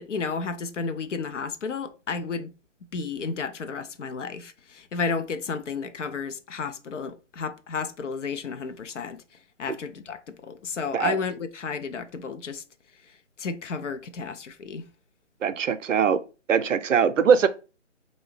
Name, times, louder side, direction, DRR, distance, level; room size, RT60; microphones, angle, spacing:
voice 1, 0.0-2.5 2.9-9.2 9.6-12.6 13.4-14.9, left 5 dB, 70° left, 0.5 m, -32 dB
voice 2, 15.4-16.2 16.5-17.5, right 7 dB, 80° right, 0.5 m, -21 dB
2.8 x 2.6 x 3.2 m
hypercardioid pair, 175°, 37 cm